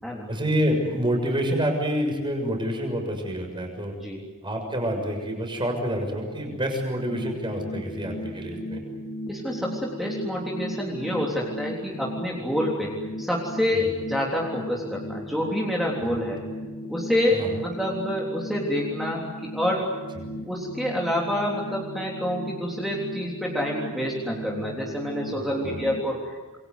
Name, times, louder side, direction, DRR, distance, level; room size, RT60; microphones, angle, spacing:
voice 1, 0.3-3.9 4.4-8.8 13.7-14.0 16.1-16.2 17.3-17.5 20.2-20.4 25.3-26.0, equal, 20° right, 3 dB, 6.6 m, -28 dB
sound 1, 7.1-26.0, equal, 90° left, 2.7 m, -37 dB
voice 2, 9.3-16.4 16.9-19.9 20.4-26.4, left 1 dB, ahead, -3 dB, 3.6 m, -27 dB
27.5 x 23.5 x 8.2 m, 1.2 s
head